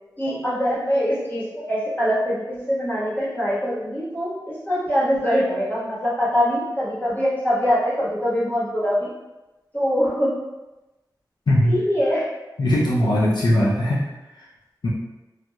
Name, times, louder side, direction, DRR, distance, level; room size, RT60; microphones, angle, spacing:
voice 1, 0.2-9.1 9.7-10.3 11.6-12.2, equal, 25° left, -10 dB, 1.3 m, -23 dB
voice 2, 11.5-11.8 12.6-14.0 14.8-14.9, left 1 dB, 85° left, -6 dB, 0.6 m, -19 dB
3.2 x 2.6 x 2.3 m, 1.0 s
wide cardioid pair, 90°, 7 cm